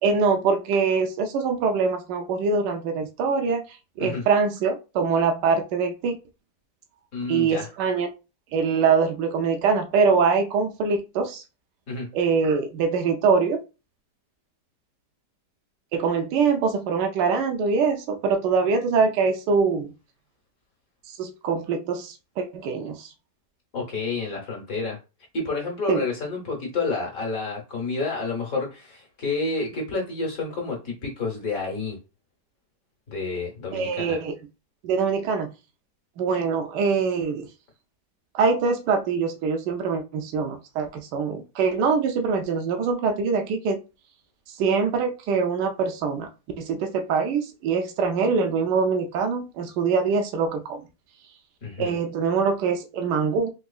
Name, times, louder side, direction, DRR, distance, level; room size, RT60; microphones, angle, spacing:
voice 1, 0.0-3.6 4.0-6.2 7.3-8.1 8.5-11.4 12.1-13.6 15.9-19.9 21.1-23.1 25.9-26.0 33.7-34.3 34.8-35.5 36.2-37.5 38.3-43.8 44.6-46.3 46.6-50.8 51.8-53.5, right 5 dB, 85° right, 1.2 m, -23 dB
voice 2, 7.1-7.7 11.9-12.1 23.7-25.0 25.3-32.0 33.1-34.2 51.6-51.9, left 3 dB, 55° left, 1.4 m, -29 dB
3.8 x 2.9 x 2.3 m
omnidirectional pair, 1.8 m